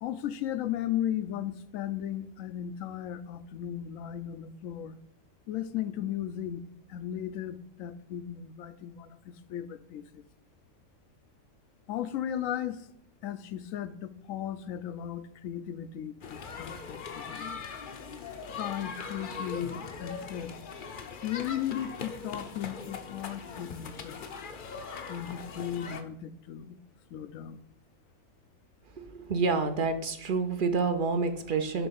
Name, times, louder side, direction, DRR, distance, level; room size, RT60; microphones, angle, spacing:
voice 1, 0.0-5.0 5.5-10.2 11.9-12.9 13.2-17.6 18.6-20.6 21.2-24.3 25.1-26.8 27.1-27.6, left 10 dB, 85° left, 12 dB, 1.0 m, -36 dB
sound 1, 16.2-26.0, left 5 dB, 50° left, 0.6 m, -41 dB
voice 2, 29.0-31.9, right 4 dB, 55° right, 8 dB, 0.6 m, -28 dB
6.9 x 3.3 x 5.6 m, 0.74 s
omnidirectional pair, 1.4 m